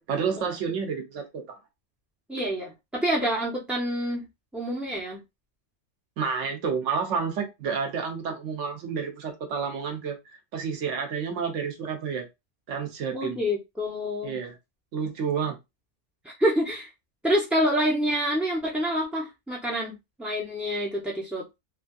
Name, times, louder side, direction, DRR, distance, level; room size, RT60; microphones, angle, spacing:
voice 1, 0.1-1.6 6.2-10.2 10.5-12.3 12.7-13.4 14.2-14.6 14.9-15.6, right 6 dB, 80° right, 1.1 m, -30 dB
voice 2, 2.3-4.3 4.5-5.2 13.1-14.4 16.2-16.9 17.2-21.6, equal, ahead, 0.3 m, -27 dB
3.2 x 2.5 x 2.3 m
omnidirectional pair, 1.2 m